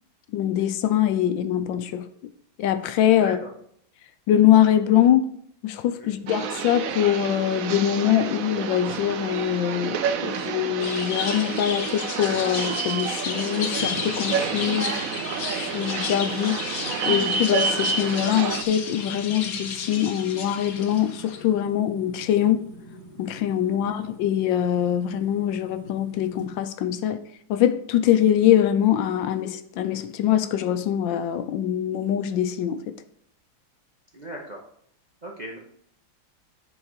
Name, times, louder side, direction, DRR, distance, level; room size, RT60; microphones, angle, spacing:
voice 1, 0.3-2.0 2.6-3.4 4.3-5.3 5.6-10.0 10.2-15.0 15.5-16.6 17.1-22.6 23.2-27.2 27.5-32.8, left 10 dB, 75° left, 11 dB, 1.3 m, -23 dB
voice 2, 3.2-3.5 6.0-6.2 23.7-24.0 34.1-34.7 35.2-35.6, right 1 dB, 40° right, -1 dB, 0.6 m, -38 dB
sound 1, 6.3-18.6, right 6 dB, 80° right, 0.7 m, -29 dB
sound 2, 10.8-21.4, left 6 dB, 55° left, 1.2 m, -33 dB
sound 3, 13.7-26.5, left 1 dB, 25° left, 0.9 m, -44 dB
9.8 x 4.7 x 4.7 m, 0.67 s
omnidirectional pair, 2.2 m